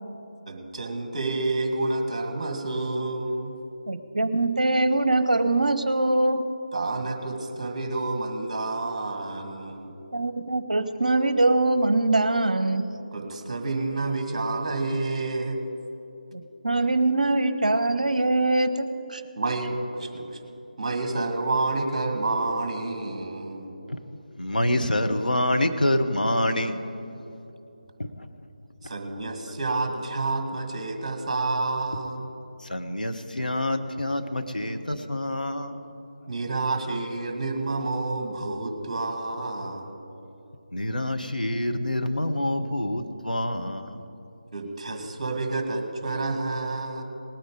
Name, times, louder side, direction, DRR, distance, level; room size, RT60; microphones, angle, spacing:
voice 1, 0.5-3.6 6.7-9.9 13.1-15.6 19.4-20.4 20.8-23.7 24.8-24.9 28.8-32.3 35.4-35.5 36.3-39.9 44.5-47.0, right 2 dB, 35° right, 5 dB, 1.6 m, -29 dB
voice 2, 3.9-6.4 10.1-12.8 16.3-18.8 19.1-19.2, right 2 dB, 60° right, 11 dB, 0.7 m, -23 dB
voice 3, 24.4-26.8 28.0-28.3 32.6-35.9 40.7-44.0, left 1 dB, 75° left, 6 dB, 1.1 m, -26 dB
19.0 x 8.9 x 5.2 m, 2.8 s
figure-of-eight pair, 155°, 5 cm